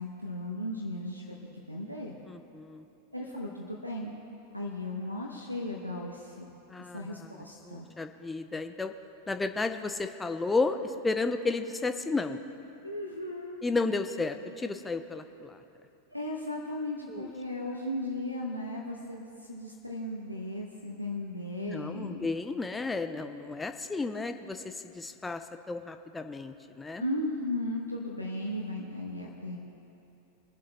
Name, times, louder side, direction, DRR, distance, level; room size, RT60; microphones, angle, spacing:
voice 1, 0.0-2.2 3.1-4.1 4.5-6.5 6.8-7.9 12.8-13.6 16.1-22.3 27.0-29.6, left 1 dB, 90° left, -3 dB, 1.1 m, -36 dB
voice 2, 2.3-2.8 6.7-7.4 7.6-8.9 9.3-12.4 13.6-15.6 17.1-17.3 21.6-25.4 25.7-27.0, left 3 dB, 10° left, 8 dB, 0.7 m, -33 dB
23.0 x 7.7 x 4.2 m, 3.0 s
figure-of-eight pair, 90°, 0 cm